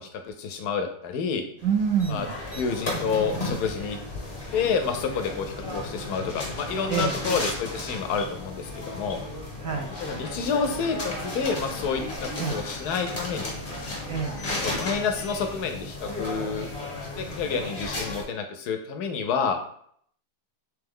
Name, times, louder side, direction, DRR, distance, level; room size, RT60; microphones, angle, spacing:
voice 1, 0.0-1.4 2.1-2.3 2.5-4.0 4.5-9.2 10.0-13.5 14.5-16.7 17.2-19.6, left 5 dB, 75° left, 6 dB, 1.1 m, -29 dB
sound 1, 1.6-18.2, left 2 dB, 35° left, 1.1 m, -34 dB
voice 2, 1.6-2.3 6.9-7.2 9.6-9.9 12.4-12.6 14.1-14.3, right 7 dB, 70° right, 3 dB, 0.8 m, -26 dB
3.4 x 3.3 x 3.5 m, 0.64 s
omnidirectional pair, 1.8 m